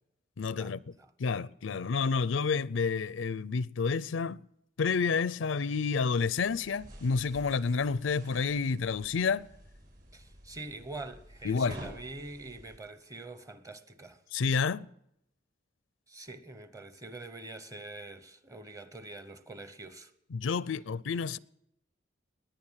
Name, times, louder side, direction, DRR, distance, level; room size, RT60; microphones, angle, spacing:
voice 1, 0.4-0.9 1.2-4.4 4.8-9.5 11.4-11.8 14.3-14.9 20.3-21.4, left 5 dB, 80° left, 0.5 m, -29 dB
sound 1, 6.4-12.8, right 1 dB, 45° right, 6.1 m, -51 dB
voice 2, 10.1-14.2 16.1-20.1, right 2 dB, 15° right, 1.0 m, -45 dB
20.5 x 9.3 x 7.4 m
head